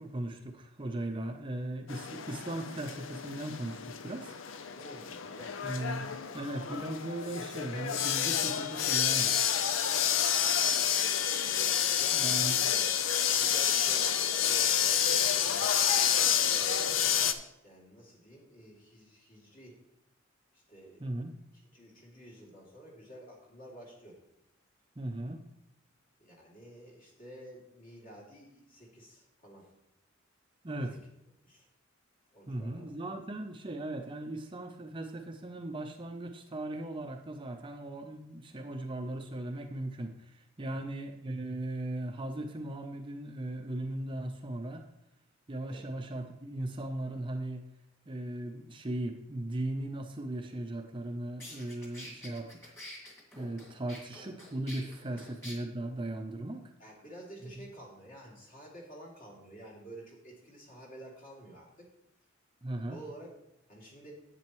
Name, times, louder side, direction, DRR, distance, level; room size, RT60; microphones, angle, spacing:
voice 1, 0.0-4.3 5.6-9.5 12.1-12.5 21.0-21.4 25.0-25.4 30.6-31.0 32.5-44.8 45.5-47.6 48.1-52.7 53.3-56.6 62.6-63.0, right 1 dB, 25° right, 4 dB, 0.6 m, -38 dB
sound 1, 1.9-17.3, left 8 dB, 70° left, 0.6 m, -29 dB
voice 2, 4.8-5.6 11.8-13.0 13.3-15.7 16.4-17.3 17.6-19.8 20.5-21.0 21.7-24.2 26.2-29.7 31.4-31.7 32.3-32.9 40.6-40.9 45.7-45.9 54.8-55.2 56.8-61.9 62.9-63.3 63.7-64.2, right 1 dB, 45° left, -3 dB, 2.8 m, -51 dB
sound 2, 51.0-51.1 51.4-55.6, equal, 15° left, 2.1 m, -47 dB
10.5 x 8.4 x 3.1 m, 0.85 s
head